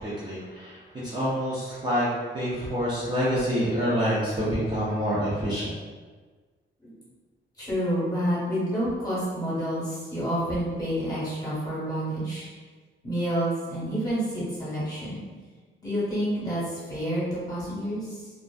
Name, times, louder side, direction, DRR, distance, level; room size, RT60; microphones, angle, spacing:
voice 1, 0.0-5.7, equal, 20° right, -10 dB, 0.4 m, -27 dB
voice 2, 7.6-12.5 13.0-15.2 15.8-18.3, equal, 20° left, -9 dB, 0.9 m, -29 dB
2.5 x 2.4 x 2.3 m, 1.4 s
wide cardioid pair, 175°, 21 cm